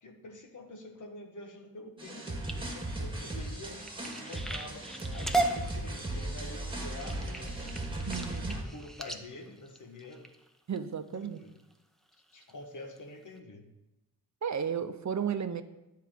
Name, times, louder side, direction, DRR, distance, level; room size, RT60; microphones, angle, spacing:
voice 1, 0.0-7.6 8.5-10.3 11.1-11.5 12.1-13.7, left 2 dB, 55° left, 2 dB, 1.5 m, -47 dB
sound 1, 2.0-8.6, right 1 dB, 15° right, 1.9 m, -37 dB
sound 2, 2.1-10.8 11.4-11.7 12.1-12.5 13.0-13.1 13.4-13.5, right 2 dB, ahead, 0.8 m, -37 dB
voice 2, 8.1-8.6 10.7-11.4 14.4-15.6, right 7 dB, 55° right, 10 dB, 0.7 m, -33 dB
12.0 x 4.7 x 7.6 m, 0.97 s
wide cardioid pair, 115°, 35 cm